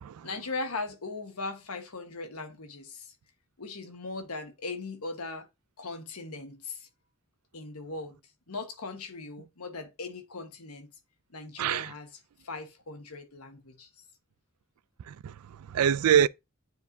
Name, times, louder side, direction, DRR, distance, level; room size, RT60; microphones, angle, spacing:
voice 1, 0.2-3.1 3.6-5.5 5.8-6.9 7.5-8.2 8.5-10.9 11.3-12.1 12.4-13.9, left 3 dB, 85° left, 1.3 m, -39 dB
voice 2, 11.6-11.9 15.1-16.3, right 9 dB, 90° right, 0.3 m, -25 dB
9.5 x 4.7 x 2.7 m
head